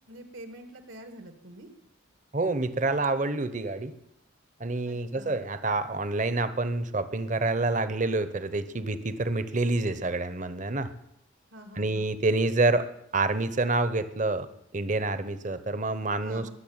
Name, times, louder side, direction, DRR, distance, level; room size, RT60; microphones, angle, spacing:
voice 1, 0.1-1.7 4.9-5.5 11.5-12.2 16.2-16.5, right 1 dB, 80° right, 7 dB, 2.1 m, -46 dB
voice 2, 2.3-3.9 4.6-10.9 11.8-12.8 13.1-14.5 14.7-16.5, right 2 dB, 40° right, 12 dB, 0.9 m, -27 dB
21.0 x 7.2 x 8.9 m, 0.79 s
head